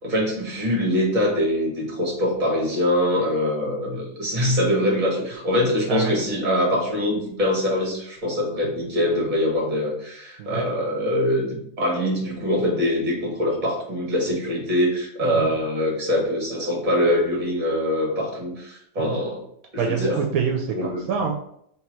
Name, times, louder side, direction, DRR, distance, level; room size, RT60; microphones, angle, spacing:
voice 1, 0.0-19.4 19.7-20.2 20.7-21.0, left 1 dB, 35° right, -2 dB, 1.5 m, -23 dB
voice 2, 19.8-21.3, right 6 dB, 80° right, 2 dB, 1.1 m, -26 dB
3.3 x 3.0 x 4.5 m, 0.72 s
omnidirectional pair, 1.5 m